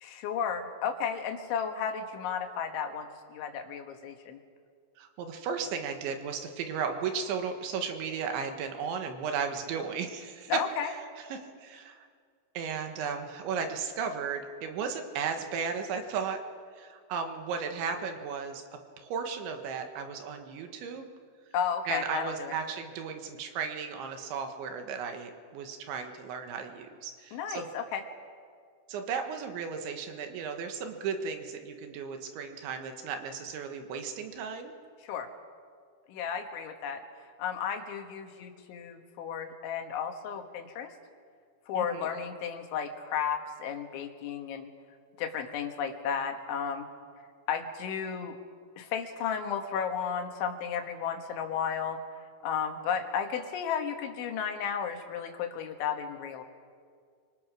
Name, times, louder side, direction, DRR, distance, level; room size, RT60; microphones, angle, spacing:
voice 1, 0.0-4.4 10.5-10.9 21.5-22.6 27.3-28.0 35.0-35.3 36.1-37.0 37.4-40.9 41.7-44.7 45.2-46.9 47.5-48.4 48.8-52.0 52.4-56.4, left 7 dB, 75° left, 5 dB, 3.9 m, -33 dB
voice 2, 5.0-11.0 11.3-12.1 12.6-16.4 16.8-18.6 19.0-21.1 21.9-27.7 28.9-34.7 41.8-42.1, right 6 dB, 75° right, 5 dB, 3.7 m, -35 dB
26.5 x 25.0 x 6.2 m, 2.1 s
omnidirectional pair, 5.6 m